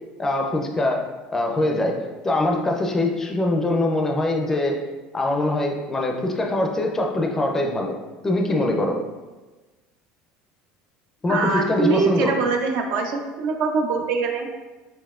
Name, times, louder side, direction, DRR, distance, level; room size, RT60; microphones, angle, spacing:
voice 1, 0.2-1.0 1.3-2.0 2.2-4.8 5.1-7.9 8.2-9.0 11.2-12.3, left 2 dB, 15° left, 2 dB, 0.4 m, -23 dB
voice 2, 11.3-14.5, right 4 dB, 60° right, 3 dB, 0.4 m, -23 dB
5.4 x 2.9 x 2.4 m, 1.2 s
cardioid pair, 160°, 3 cm